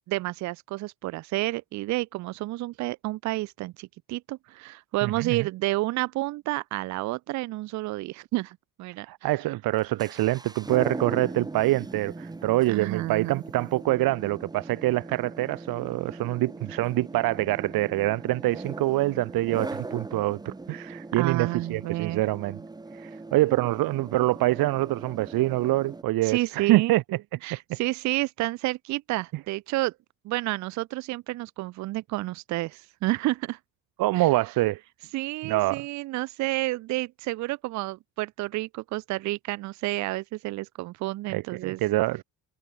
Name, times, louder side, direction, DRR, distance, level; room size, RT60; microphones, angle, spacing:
voice 1, 0.0-9.1 12.7-13.4 21.1-22.2 26.2-26.9 27.4-29.9 30.2-33.6 34.2-34.3 35.1-41.8, right 19 dB, 50° right, 0.4 m, -30 dB
voice 2, 5.0-5.5 9.0-22.6 22.9-27.0 27.5-27.8 34.0-34.8 35.4-35.8 41.3-42.2, right 18 dB, 75° right, 1.3 m, -25 dB
sound 1, 9.7-26.0, right 3 dB, 10° right, 2.4 m, -40 dB
cardioid pair, 170°, 36 cm